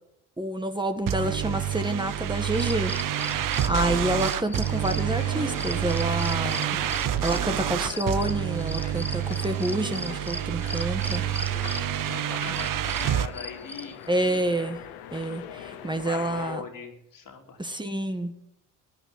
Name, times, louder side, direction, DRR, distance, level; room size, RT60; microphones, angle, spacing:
voice 1, 0.4-2.9 3.2-6.8 7.2-11.2 14.1-14.8 15.1-16.6 17.6-18.3, right 1 dB, 10° right, 7 dB, 1.7 m, -28 dB
sound 1, 1.1-13.3, right 12 dB, 60° right, 0.9 m, -28 dB
sound 2, 1.9-16.6, left 10 dB, 85° left, 1.2 m, -42 dB
sound 3, 2.4-14.1, left 1 dB, 5° left, 1.0 m, -38 dB
voice 2, 11.6-14.0 15.2-15.8 16.0-17.6, left 6 dB, 60° left, 3 dB, 3.3 m, -41 dB
15.0 x 9.1 x 9.1 m, 0.78 s
supercardioid pair, 55°, 37 cm